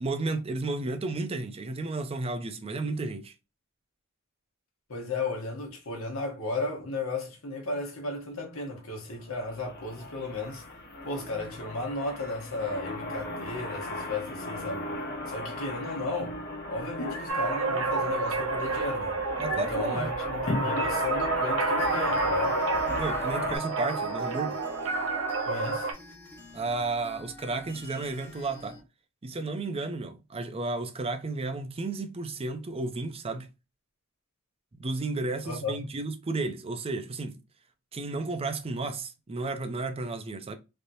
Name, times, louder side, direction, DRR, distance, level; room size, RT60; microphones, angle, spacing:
voice 1, 0.0-3.3 19.4-20.1 22.9-24.6 26.5-28.8 29.2-33.5 34.7-37.4 37.9-40.6, right 3 dB, 30° right, 0.5 m, -33 dB
voice 2, 4.9-10.6 11.0-14.9 15.3-16.4 16.7-19.2 19.5-22.6 25.4-25.9 35.4-35.8, left 2 dB, 80° left, 1.1 m, -34 dB
sound 1, 9.3-23.6, left 1 dB, 50° left, 0.9 m, -34 dB
sound 2, 17.3-25.9, right 4 dB, 75° right, 0.7 m, -30 dB
sound 3, 21.8-28.8, left 2 dB, 10° left, 1.0 m, -48 dB
3.3 x 2.7 x 2.6 m
head